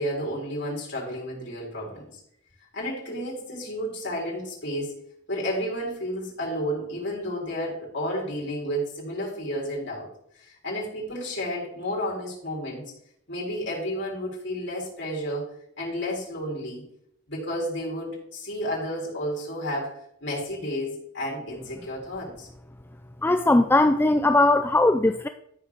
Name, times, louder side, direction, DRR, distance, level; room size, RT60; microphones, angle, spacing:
voice 1, 0.0-2.1 2.7-4.9 5.3-10.1 10.4-12.8 13.3-15.5 15.8-16.8 17.3-22.5, equal, 55° left, -3 dB, 4.2 m, -31 dB
voice 2, 23.2-25.3, left 2 dB, 10° left, 8 dB, 0.3 m, -19 dB
13.0 x 5.0 x 6.3 m, 0.71 s
head